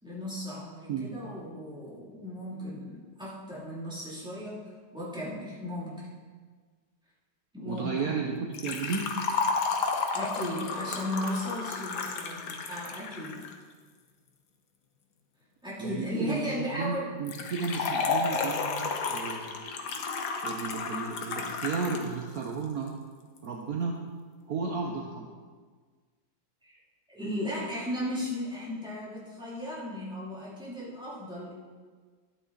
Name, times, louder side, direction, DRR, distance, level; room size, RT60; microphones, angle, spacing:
voice 1, 0.0-6.1 7.5-8.3 10.1-13.5 15.6-17.1 26.6-26.8 27.1-31.5, left 1 dB, ahead, -7 dB, 3.0 m, -36 dB
voice 2, 7.6-9.2 15.8-19.6 20.4-22.9 23.4-23.9 24.5-25.3, right 5 dB, 60° right, 0 dB, 1.3 m, -33 dB
Liquid, 8.5-13.5 17.3-22.1 22.4-22.5 23.4-23.5, left 4 dB, 70° left, 1.5 m, -32 dB
12.5 x 9.1 x 4.1 m, 1.5 s
omnidirectional pair, 1.9 m